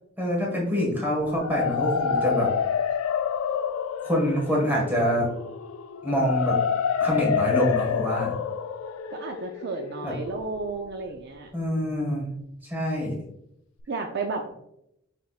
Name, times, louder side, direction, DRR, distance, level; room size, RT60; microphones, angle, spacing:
voice 1, 0.2-2.5 4.0-5.3 6.0-6.6 7.0-8.3 10.0-10.1 11.5-12.3 12.7-13.2, equal, 10° right, -3 dB, 1.5 m, -25 dB
sound 1, 1.2-11.1, left 7 dB, 80° left, 0.3 m, -28 dB
voice 2, 9.1-11.5 13.9-14.5, right 3 dB, 50° right, 4 dB, 0.4 m, -32 dB
6.6 x 3.4 x 2.4 m, 0.78 s
head